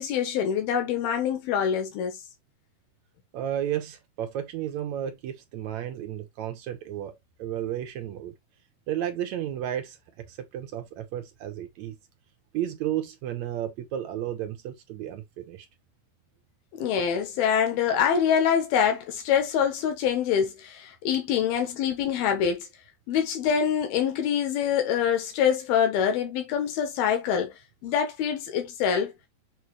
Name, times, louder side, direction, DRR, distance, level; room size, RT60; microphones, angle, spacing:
voice 1, 0.0-2.2 16.7-22.7 23.1-27.5 27.8-29.1, left 8 dB, 90° left, 3.1 m, -25 dB
voice 2, 3.3-7.1 7.4-8.3 8.9-10.0 10.3-12.0 12.5-15.7, right 11 dB, 70° right, 1.8 m, -32 dB
7.1 x 2.8 x 4.7 m
omnidirectional pair, 4.2 m